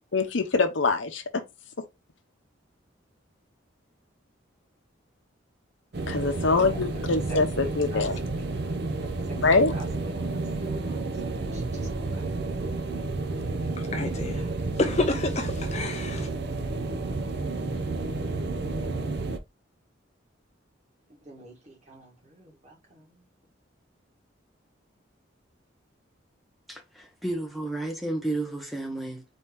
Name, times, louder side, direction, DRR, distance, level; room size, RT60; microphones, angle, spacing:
voice 1, 0.1-1.4 6.1-8.2 9.4-9.7, left 3 dB, 70° left, 0.8 m, -24 dB
sound 1, 5.9-19.4, right 3 dB, 55° right, 0.5 m, -31 dB
voice 2, 6.3-8.1 8.4-8.5 9.0-9.9 10.3-12.3 14.3-14.7 21.1-23.2, right 1 dB, 35° right, 1.5 m, -48 dB
voice 3, 13.9-14.4 14.8-16.3, left 2 dB, 35° left, 0.6 m, -28 dB
voice 4, 26.7-29.2, right 2 dB, ahead, 0.8 m, -32 dB
4.3 x 2.8 x 3.5 m
head